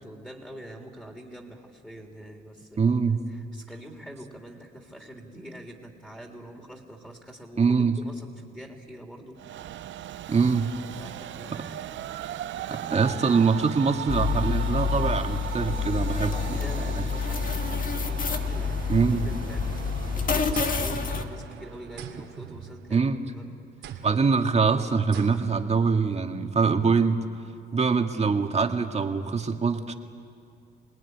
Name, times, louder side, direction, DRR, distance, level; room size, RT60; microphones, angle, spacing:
voice 1, 0.0-2.8 3.1-9.4 11.0-12.0 12.5-13.4 16.2-23.1 23.3-24.0, right 1 dB, 5° left, 0 dB, 3.6 m, -45 dB
voice 2, 2.8-3.2 7.6-8.0 10.3-10.7 11.5-11.6 12.7-17.0 18.9-19.3 22.9-23.2 24.0-27.2 27.7-29.9, right 5 dB, 35° right, 4 dB, 1.9 m, -24 dB
Train, 9.4-22.8, right 11 dB, 70° right, 0.6 m, -38 dB
sound 1, 14.1-21.2, left 5 dB, 45° left, 1.8 m, -28 dB
sound 2, 20.5-21.6 22.0-23.2 23.8-24.4 25.1-25.7, right 7 dB, 85° right, 2.7 m, -42 dB
27.5 x 19.5 x 9.8 m, 2.4 s
cardioid pair, 90°, 20 cm